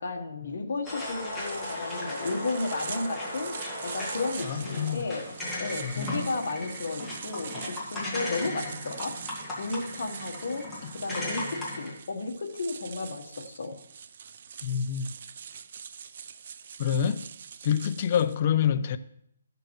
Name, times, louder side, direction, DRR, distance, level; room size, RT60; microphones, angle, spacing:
voice 1, 0.0-3.6 3.8-5.2 5.6-9.2 9.6-10.7 10.9-13.8, left 3 dB, 60° left, 1.3 m, -33 dB
sound 1, 0.8-11.9, left 1 dB, 5° left, 1.9 m, -36 dB
sound 2, 1.0-18.4, right 7 dB, 45° right, 0.4 m, -44 dB
voice 2, 4.4-5.1 5.8-6.1 7.5-7.6 10.8-10.9 14.6-15.1 16.8-17.3 17.6-19.0, left 8 dB, 35° left, 0.4 m, -27 dB
14.0 x 6.8 x 3.2 m
hypercardioid pair, 165°, 0 cm